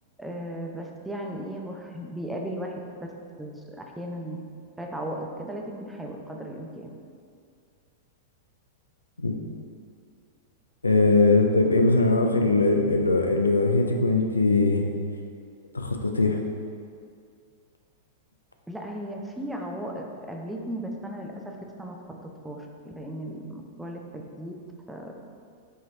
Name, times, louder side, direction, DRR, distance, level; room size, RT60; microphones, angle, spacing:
voice 1, 0.2-2.8 3.4-4.4 4.8-6.9 18.7-24.0 24.4-24.5 24.9-25.1, right 1 dB, 5° right, 1 dB, 0.4 m, -36 dB
voice 2, 10.8-14.9 15.7-16.4, left 2 dB, 85° left, 3 dB, 0.3 m, -21 dB
4.7 x 3.0 x 3.1 m, 2.2 s
figure-of-eight pair, 100°, 0 cm